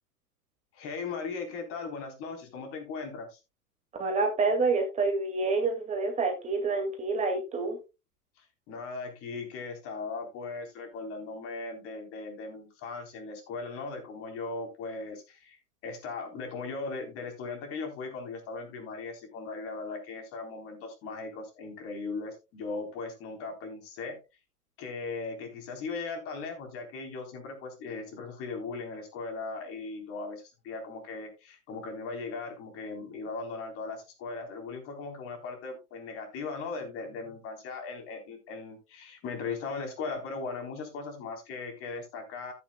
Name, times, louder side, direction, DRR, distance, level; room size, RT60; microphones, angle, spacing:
voice 1, 0.7-3.4 8.4-15.6 15.8-24.2 24.8-42.5, left 4 dB, 30° left, 4 dB, 3.7 m, -38 dB
voice 2, 4.0-7.8, right 3 dB, 15° right, 3 dB, 2.1 m, -28 dB
14.5 x 9.3 x 2.2 m, 0.26 s
figure-of-eight pair, 110°, 46 cm